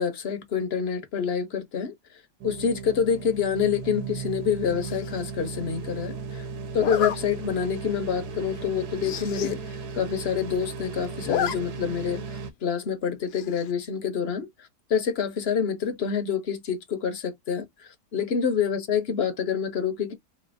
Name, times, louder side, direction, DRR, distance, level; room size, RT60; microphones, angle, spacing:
voice 1, 0.0-1.9 2.4-6.5 6.7-12.2 12.6-14.5 14.9-17.7 18.1-20.1, left 7 dB, 45° left, 0.9 m, -27 dB
sound 1, 2.4-12.5, right 5 dB, 75° right, 1.3 m, -36 dB
Zipper (clothing), 4.8-5.2 6.8-7.2 7.7-7.9 8.2-8.3 8.6-8.7 8.9-9.5 9.9-10.0 10.2-10.7 11.0-11.6 11.9-12.0 13.3-13.7, left 10 dB, 80° left, 1.2 m, -30 dB
3.9 x 3.2 x 2.5 m
omnidirectional pair, 1.8 m